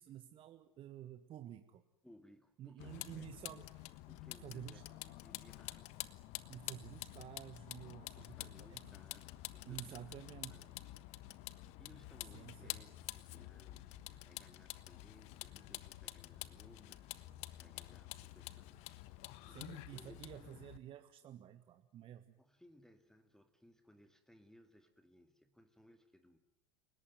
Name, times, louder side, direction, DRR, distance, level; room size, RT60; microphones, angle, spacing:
voice 1, 0.0-1.8 2.6-3.9 4.4-4.8 6.5-8.9 9.7-10.6 11.7-11.8 12.3-12.8 19.5-22.4, right 11 dB, 40° right, 9 dB, 1.6 m, -51 dB
voice 2, 2.0-3.6 4.1-5.9 8.2-11.5 11.8-20.8 21.2-21.4 22.1-26.4, left 1 dB, 5° left, 8 dB, 2.2 m, -64 dB
Vehicle, 2.8-20.8, left 17 dB, 55° left, 1.3 m, -49 dB
30.0 x 18.5 x 9.3 m, 0.82 s
hypercardioid pair, 80°, 14 cm